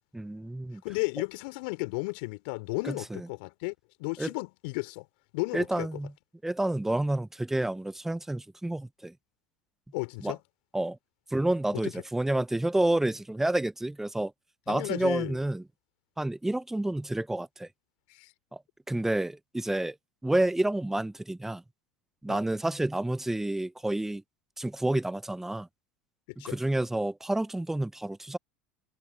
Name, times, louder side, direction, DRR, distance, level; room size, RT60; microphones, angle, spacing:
voice 1, 0.1-0.8 2.9-3.3 4.2-4.3 5.5-6.1 6.4-9.1 10.2-10.3 10.7-11.0 11.3-14.3 14.7-15.6 16.2-17.7 18.5-18.6 18.9-20.0 20.2-21.6 22.2-24.2 24.6-25.7 26.4-28.4, right 1 dB, 5° right, 0.9 m, -29 dB
voice 2, 0.8-3.7 4.0-5.1 5.3-5.9 9.9-10.4 11.8-11.9 14.7-15.4 18.1-18.3 22.3-22.4 26.3-26.6, left 29 dB, 65° left, 3.5 m, -34 dB
figure-of-eight pair, 75°, 6 cm